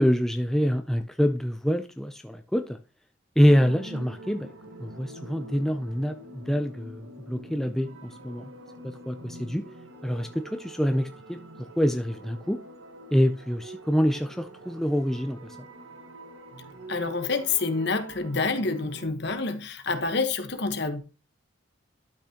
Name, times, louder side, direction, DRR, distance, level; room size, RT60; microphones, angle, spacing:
voice 1, 0.0-2.8 3.4-4.5 4.8-8.5 8.8-9.6 10.0-12.6 13.1-15.5, equal, ahead, 0.5 m, -26 dB
sound 1, 3.4-19.1, right 2 dB, 75° right, 1.5 m, -45 dB
voice 2, 16.9-21.0, left 4 dB, 55° left, 1.3 m, -28 dB
12.0 x 6.0 x 2.9 m
head